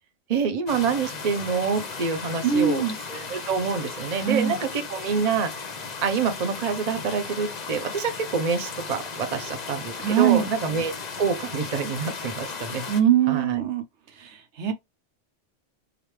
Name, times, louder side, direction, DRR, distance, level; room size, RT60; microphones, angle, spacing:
voice 1, 0.3-2.8 3.1-5.5 6.0-10.9 11.2-12.9 13.3-13.6, right 5 dB, 40° right, 0.7 m, -27 dB
sound 1, 0.7-13.0, left 4 dB, 45° left, 0.6 m, -36 dB
voice 2, 2.4-2.9 4.2-4.6 10.0-10.5 12.9-13.8 14.2-14.7, right 9 dB, 70° right, 1.0 m, -22 dB
4.9 x 2.5 x 3.2 m
omnidirectional pair, 1.2 m